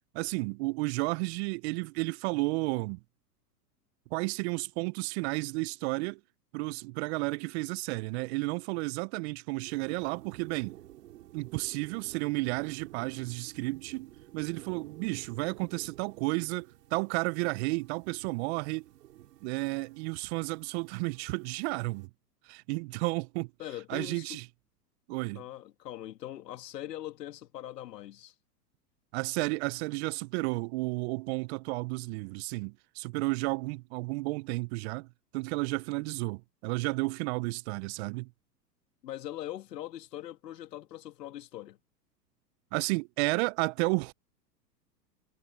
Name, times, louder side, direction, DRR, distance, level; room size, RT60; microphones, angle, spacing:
voice 1, 0.1-3.0 4.1-6.2 6.5-10.8 11.3-18.8 19.4-22.1 22.5-23.5 23.9-24.4 25.1-25.4 29.1-35.1 35.3-38.3 42.7-44.1, right 26 dB, 40° right, 0.6 m, -32 dB
sound 1, 9.6-22.1, right 14 dB, 70° right, 3.6 m, -53 dB
voice 2, 23.6-24.4 25.4-28.3 39.0-41.8, left 13 dB, 70° left, 2.1 m, -41 dB
hypercardioid pair, 105°, 49 cm